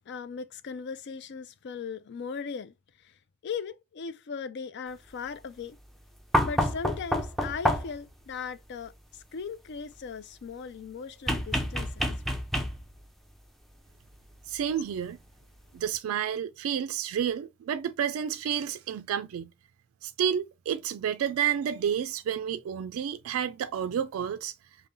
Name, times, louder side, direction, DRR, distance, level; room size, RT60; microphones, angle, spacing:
voice 1, 0.1-2.7 3.0-3.1 3.4-5.8 6.4-12.2, left 6 dB, 55° left, 0.4 m, -38 dB
sound 1, 6.3-8.1 11.3-13.0 14.5-14.6, equal, ahead, 0.5 m, -28 dB
voice 2, 14.5-15.2 15.7-19.5 20.0-24.5, right 8 dB, 75° right, 0.3 m, -30 dB
5.3 x 2.1 x 2.6 m
head